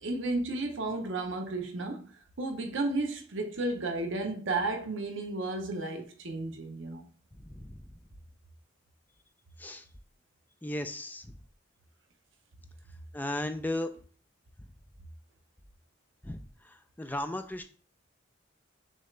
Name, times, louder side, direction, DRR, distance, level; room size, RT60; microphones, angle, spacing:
voice 1, 0.0-2.1 2.4-7.0, right 2 dB, 70° right, 0.8 m, -33 dB
voice 2, 10.6-11.3 13.1-13.9 16.2-16.4 17.0-17.6, left 1 dB, 10° left, 0.3 m, -34 dB
6.4 x 2.4 x 3.2 m
head